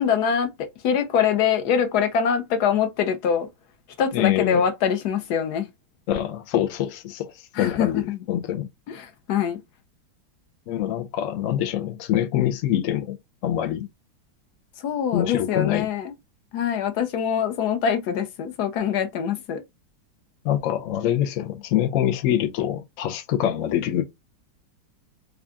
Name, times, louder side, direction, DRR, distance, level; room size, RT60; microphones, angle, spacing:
voice 1, 0.0-3.5 4.0-5.7 7.5-8.2 8.9-9.6 14.8-16.1 16.5-19.6, left 7 dB, 65° left, 1.1 m, -24 dB
voice 2, 4.1-4.6 6.1-8.0 8.3-8.7 10.7-13.2 13.4-13.9 15.1-15.9 20.4-24.0, left 11 dB, 85° left, 0.7 m, -25 dB
3.7 x 2.4 x 3.4 m
omnidirectional pair, 2.1 m